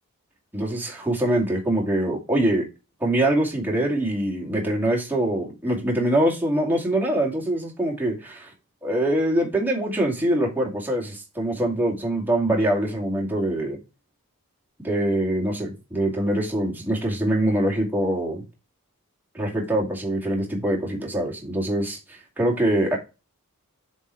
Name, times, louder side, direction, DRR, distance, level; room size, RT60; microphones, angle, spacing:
voice 1, 0.5-2.7 3.0-8.5 8.8-13.8 14.8-18.4 19.3-23.0, right 1 dB, 10° right, 2.2 m, -24 dB
7.2 x 4.1 x 4.3 m
head